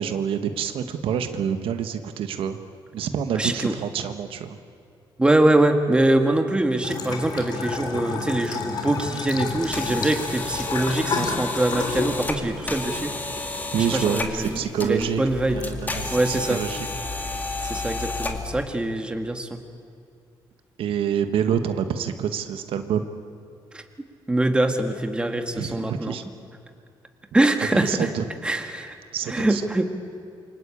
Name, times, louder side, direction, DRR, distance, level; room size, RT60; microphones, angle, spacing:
voice 1, 0.0-2.6 2.9-4.6 13.7-15.2 15.5-16.9 20.8-23.1 25.5-26.2 27.7-28.2 29.1-29.6, right 8 dB, 80° right, 8 dB, 1.4 m, -27 dB
voice 2, 3.3-3.7 5.2-13.1 13.8-15.7 16.1-16.6 17.6-19.6 23.7-23.8 24.3-26.2 27.3-28.1 28.4-28.9 29.3-29.8, right 1 dB, 10° right, 5 dB, 1.8 m, -23 dB
Bathtub (filling or washing) / Trickle dribble, 6.8-17.8, left 4 dB, 50° left, 3.2 m, -33 dB
sound 1, 9.5-18.6, left 2 dB, 20° left, 2.1 m, -32 dB
28.0 x 24.5 x 8.6 m, 2.4 s
cardioid pair, 145°, 9 cm